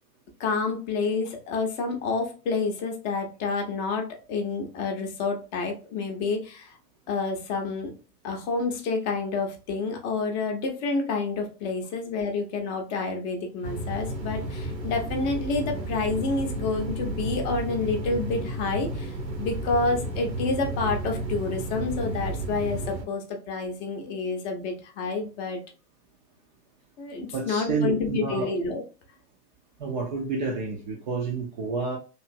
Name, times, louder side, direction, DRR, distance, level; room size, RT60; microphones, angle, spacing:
voice 1, 0.4-6.7 7.1-7.9 8.2-25.6 27.0-28.8, left 4 dB, 30° left, 0.6 m, -29 dB
sound 1, 13.6-23.0, right 2 dB, 80° right, 0.9 m, -32 dB
voice 2, 27.3-28.5 29.8-32.0, right 4 dB, 30° right, 0.4 m, -29 dB
3.0 x 2.5 x 2.4 m
figure-of-eight pair, 90°, 50 cm